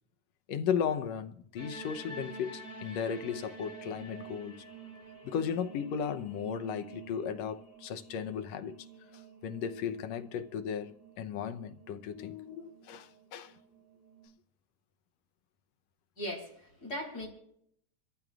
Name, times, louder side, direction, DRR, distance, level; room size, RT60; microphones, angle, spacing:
voice 1, 0.5-4.6 5.2-8.9 9.1-13.5, left 7 dB, 70° left, 1.9 m, -35 dB
sound 1, 1.6-14.3, right 3 dB, 85° right, 8.5 m, -49 dB
voice 2, 16.2-17.3, equal, 30° left, 4.3 m, -39 dB
26.5 x 14.0 x 2.4 m
omnidirectional pair, 3.3 m